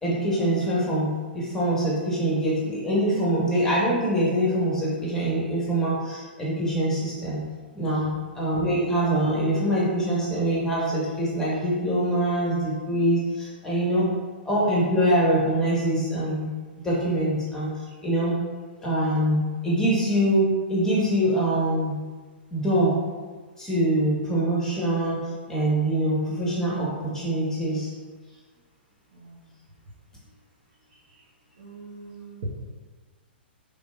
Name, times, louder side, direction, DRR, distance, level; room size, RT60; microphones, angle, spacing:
voice 1, 0.0-7.4 7.7-8.1 8.3-14.1 14.4-16.5 16.8-17.7 18.0-18.3 18.8-22.0 22.5-23.0 23.6-25.2 25.5-27.9, right 1 dB, 10° left, -7 dB, 1.4 m, -24 dB
voice 2, 29.1-29.6 31.6-32.5, right 3 dB, 60° right, -3 dB, 1.1 m, -42 dB
5.0 x 3.6 x 2.4 m, 1.4 s
hypercardioid pair, 115°, 6 cm